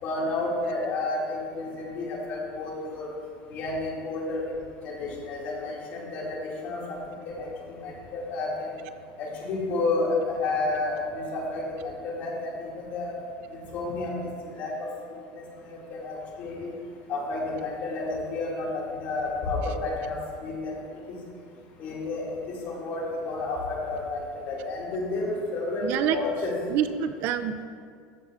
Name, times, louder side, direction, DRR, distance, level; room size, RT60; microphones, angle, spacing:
voice 1, 0.0-3.1 3.5-4.5 4.8-7.0 7.2-8.7 9.2-13.1 13.5-14.7 15.1-16.7 17.1-20.8 21.1-21.2 21.8-26.5, left 2 dB, 45° left, -3 dB, 2.2 m, -31 dB
voice 2, 25.8-26.2 26.7-27.6, right 10 dB, 55° right, 11 dB, 0.4 m, -27 dB
14.0 x 7.1 x 2.4 m, 2.2 s
supercardioid pair, 145°, 4 cm